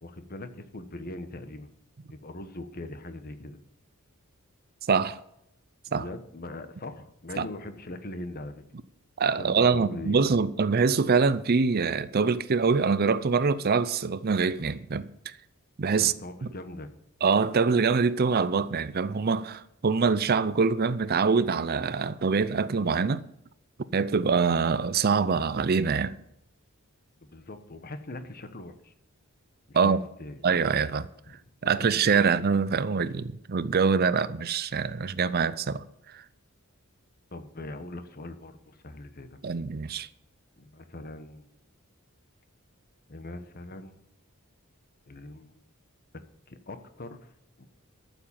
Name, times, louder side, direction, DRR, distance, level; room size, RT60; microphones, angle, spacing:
voice 1, 0.0-1.7 2.1-3.6 6.0-8.6 9.4-10.4 16.0-16.9 27.2-28.9 29.7-30.4 31.3-31.4 37.3-39.4 40.6-41.5 43.1-44.0 45.1-45.6 46.5-47.3 47.6-47.7, left 1 dB, 45° left, 1.1 m, -41 dB
voice 2, 4.9-5.2 5.9-6.1 7.4-7.5 9.2-15.4 15.8-16.1 17.2-23.3 23.9-26.1 29.7-30.0 30.4-31.1 31.6-35.8 36.1-36.2 39.4-40.1, right 5 dB, 45° right, 0.5 m, -24 dB
12.5 x 7.2 x 7.4 m
head